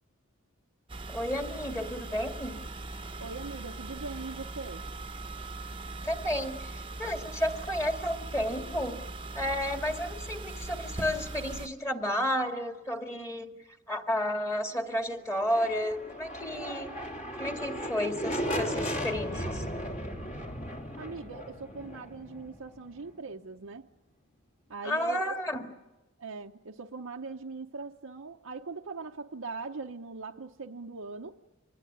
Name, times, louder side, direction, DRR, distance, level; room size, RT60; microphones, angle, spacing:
sound 1, 0.9-11.7, right 2 dB, 25° right, 1.0 m, -40 dB
voice 1, 1.1-2.6 6.0-9.0 9.3-13.5 13.9-16.9 17.3-19.6 24.8-25.7, equal, 15° left, 4 dB, 2.2 m, -32 dB
voice 2, 3.2-4.9 21.0-23.9 24.7-25.3 26.2-31.4, right 4 dB, 75° right, 0 dB, 0.9 m, -41 dB
sound 2, 15.3-23.1, equal, 40° left, 3.2 m, -36 dB
26.0 x 19.5 x 9.6 m, 1.1 s
head